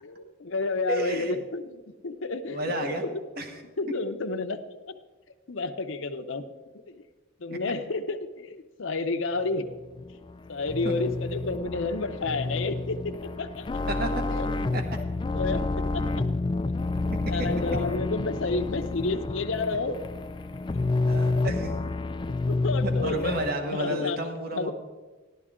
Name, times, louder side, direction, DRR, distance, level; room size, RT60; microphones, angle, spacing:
voice 1, 0.0-2.7 3.0-3.1 3.8-4.6 5.5-6.5 6.9-7.0 7.4-9.7 10.5-13.1 13.4-13.6 14.3-14.5 15.3-15.6 15.9-16.2 17.3-20.0 22.5-23.4 23.7-24.2 24.5-24.7, left 3 dB, 70° left, 7 dB, 0.7 m, -30 dB
voice 2, 0.9-1.3 2.5-3.0 3.4-3.6 10.8-10.9 13.9-14.2 14.7-14.8 20.7-21.7 22.8-24.7, right 1 dB, 45° right, 5 dB, 1.3 m, -31 dB
sound 1, 9.7-23.5, left 2 dB, 25° left, 0.3 m, -29 dB
14.5 x 11.5 x 3.7 m, 1.3 s
head